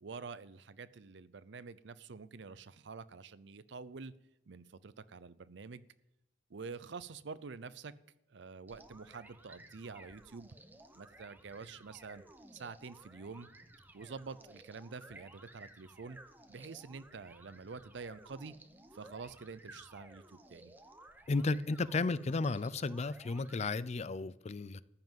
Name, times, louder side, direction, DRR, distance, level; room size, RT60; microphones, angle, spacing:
voice 1, 0.0-4.1 4.5-5.8 6.5-7.9 8.3-10.5 11.0-12.2 12.5-13.5 13.9-16.2 16.5-18.5 18.9-20.7, right 4 dB, 70° right, 0.6 m, -47 dB
sound 1, 8.7-23.7, right 1 dB, 10° right, 0.9 m, -57 dB
voice 2, 21.3-24.8, left 3 dB, 35° left, 0.4 m, -33 dB
14.0 x 5.9 x 9.0 m
head